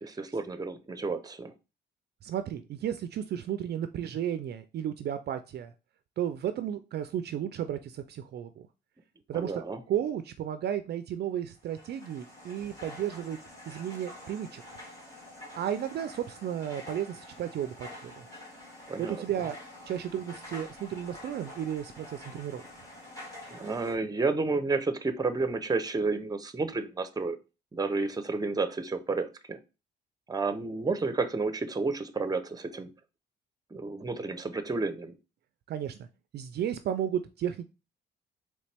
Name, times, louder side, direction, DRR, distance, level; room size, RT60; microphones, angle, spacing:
voice 1, 0.0-1.5 9.3-9.8 18.9-19.2 23.5-27.4 27.7-29.6 30.3-32.9 33.7-35.1, right 3 dB, 20° right, 10 dB, 0.7 m, -31 dB
voice 2, 2.2-5.7 6.2-8.7 9.3-13.4 13.7-14.8 15.6-18.3 19.0-19.6 19.9-22.6 35.7-36.0 36.3-37.6, right 10 dB, 55° right, 10 dB, 0.4 m, -33 dB
sound 1, 11.6-24.0, left 1 dB, 15° left, 2.0 m, -47 dB
4.0 x 3.2 x 3.4 m, 0.30 s
cardioid pair, 90°, 20 cm